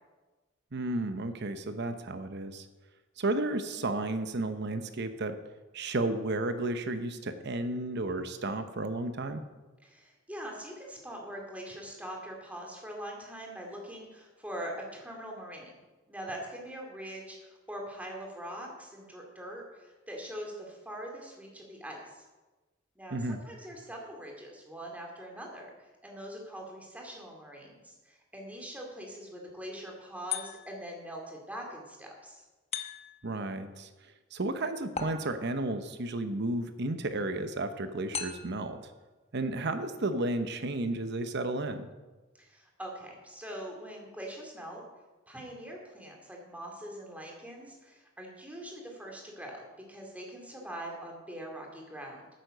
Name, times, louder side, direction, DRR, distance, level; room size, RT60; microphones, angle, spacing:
voice 1, 0.7-2.7 3.2-5.3 5.7-9.4 23.1-23.4 33.2-33.9 34.3-38.9 39.3-41.9, right 2 dB, 55° right, 9 dB, 0.8 m, -32 dB
voice 2, 9.8-15.7 16.1-22.3 23.0-32.4 42.3-44.8 45.3-52.3, equal, 5° right, 0 dB, 2.4 m, -43 dB
sound 1, 30.3-30.9 32.7-33.4 35.0-35.7 38.1-38.7, left 7 dB, 30° left, 0.9 m, -38 dB
9.4 x 8.9 x 6.6 m, 1.2 s
head